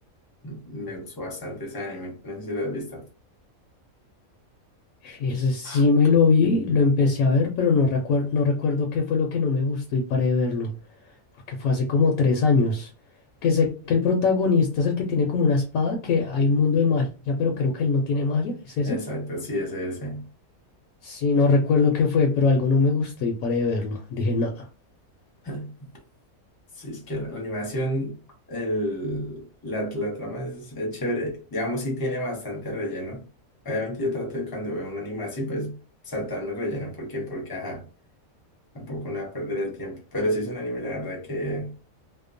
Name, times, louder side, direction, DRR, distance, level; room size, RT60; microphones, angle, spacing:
voice 1, 0.4-3.0 5.6-5.8 18.8-20.3 25.4-25.9 26.8-28.2 28.5-33.2 33.6-35.7 36.0-37.8 38.7-41.7, equal, 20° left, 0.6 m, -30 dB
voice 2, 5.0-10.7 11.5-12.9 13.4-19.0 21.0-24.7, left 4 dB, 75° left, 1.0 m, -22 dB
2.8 x 2.0 x 2.5 m
omnidirectional pair, 1.5 m